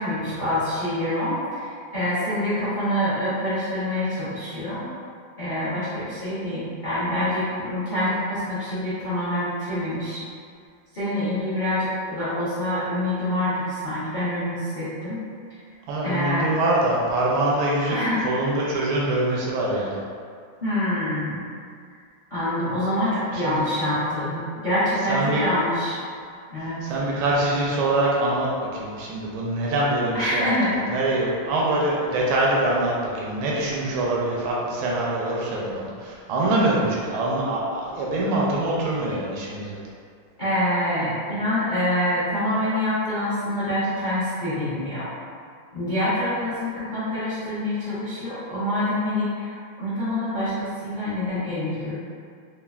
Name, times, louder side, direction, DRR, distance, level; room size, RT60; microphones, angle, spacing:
voice 1, 0.0-4.9 5.4-10.2 10.9-15.2 16.0-16.5 17.9-18.2 20.6-21.4 22.3-26.0 26.5-26.8 30.1-30.7 40.4-45.1 45.7-49.5 49.8-51.9, left 1 dB, 70° left, -13 dB, 0.4 m, -26 dB
voice 2, 15.9-18.0 18.2-19.9 23.3-23.6 25.1-25.4 26.8-30.5 30.9-39.8, right 1 dB, 85° right, -4 dB, 1.4 m, -24 dB
5.4 x 2.0 x 2.3 m, 2.2 s
omnidirectional pair, 2.2 m